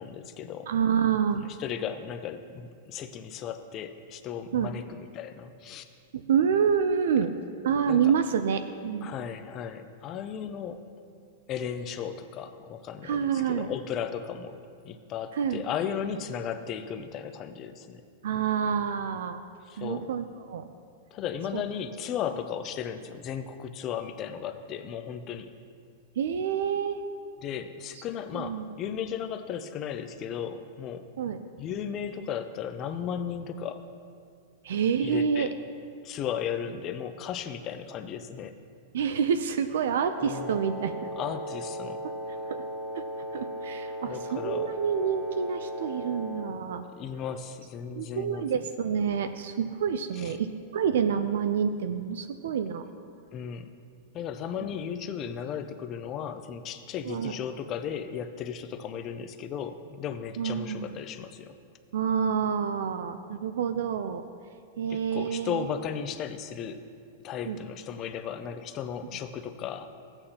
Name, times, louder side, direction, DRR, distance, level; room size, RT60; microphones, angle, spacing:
voice 1, 0.0-0.7 1.6-5.9 7.9-8.1 9.0-10.8 11.5-14.6 14.8-18.0 19.7-20.1 21.1-25.5 27.4-31.1 31.6-33.8 35.0-35.5 36.0-38.6 40.2-40.5 41.2-42.0 44.1-44.7 47.0-48.4 50.2-50.3 53.3-53.7 54.1-61.6 64.9-66.8 67.2-69.9, left 8 dB, 30° left, 10 dB, 0.5 m, -35 dB
voice 2, 0.7-1.5 4.5-4.7 6.1-7.3 7.6-9.1 13.0-13.7 15.3-15.6 18.2-19.4 19.8-20.7 21.5-21.6 26.2-27.0 28.3-28.6 31.2-31.4 34.6-35.5 38.9-40.9 42.5-42.6 42.9-43.0 43.3-46.9 48.0-52.9 57.1-57.4 60.4-61.0 61.9-64.2 64.8-65.6 67.4-67.6, right 7 dB, 80° right, 9 dB, 0.4 m, -28 dB
Wind instrument woodwind instrument, 40.2-46.6, equal, 10° right, 1.1 m, -37 dB
14.5 x 8.8 x 2.9 m, 2.3 s
supercardioid pair, 155°, 0 cm